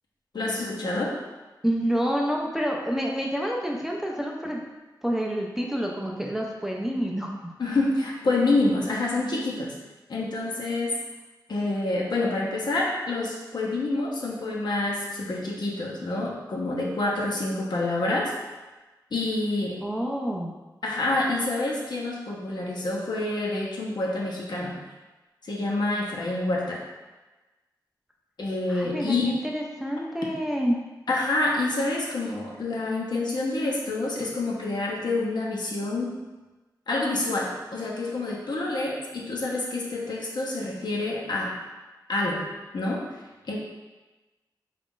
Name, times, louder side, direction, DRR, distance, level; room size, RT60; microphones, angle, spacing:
voice 1, 0.3-1.2 7.6-9.7 10.1-11.0 11.5-18.3 19.1-19.8 20.8-24.8 25.4-26.8 28.4-29.4 31.1-36.1 36.9-41.5 42.1-42.4 42.7-43.1 43.4-43.6, left 2 dB, 65° left, -3 dB, 0.8 m, -27 dB
voice 2, 1.6-4.6 5.0-7.3 19.8-20.5 28.7-30.8, equal, 5° right, -1 dB, 0.4 m, -28 dB
4.0 x 2.4 x 3.7 m, 1.2 s
wide cardioid pair, 105°, 8 cm